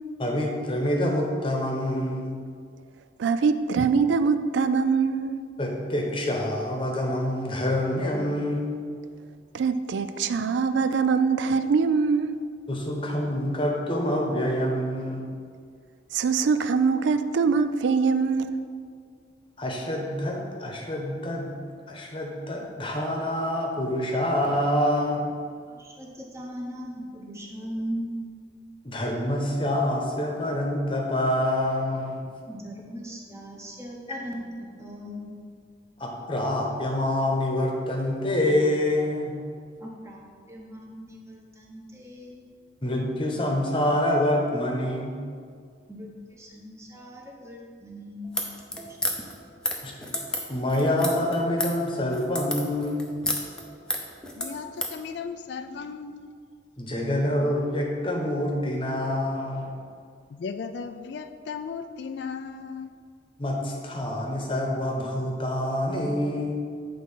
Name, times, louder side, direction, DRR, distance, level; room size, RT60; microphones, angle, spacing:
voice 1, 0.2-2.4 5.6-8.9 12.7-15.3 19.6-21.5 21.9-25.4 28.8-32.2 36.0-39.3 42.8-45.2 49.8-50.2 50.5-53.3 56.8-59.7 63.4-66.5, left 1 dB, 25° left, 1.0 m, -26 dB
voice 2, 3.2-5.4 9.5-12.3 16.1-18.6, right 5 dB, 75° right, 0.3 m, -23 dB
voice 3, 25.7-28.1 32.4-35.3 39.8-42.5 45.9-48.3 48.8-49.0, equal, 15° right, 1.0 m, -39 dB
sound 1, 48.2-55.0, left 1 dB, 5° left, 0.6 m, -31 dB
voice 4, 54.3-56.3 60.3-62.9, left 5 dB, 65° left, 0.3 m, -36 dB
8.6 x 3.7 x 5.5 m
head